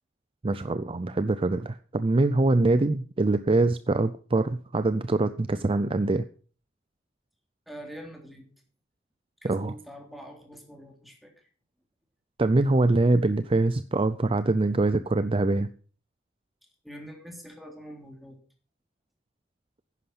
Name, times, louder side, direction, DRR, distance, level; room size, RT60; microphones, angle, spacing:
voice 1, 0.4-6.2 9.4-9.7 12.4-15.7, right 2 dB, 30° right, 12 dB, 0.5 m, -24 dB
voice 2, 7.7-8.5 9.4-11.3 16.8-18.4, equal, ahead, 1 dB, 3.4 m, -44 dB
11.0 x 10.0 x 5.8 m, 0.41 s
head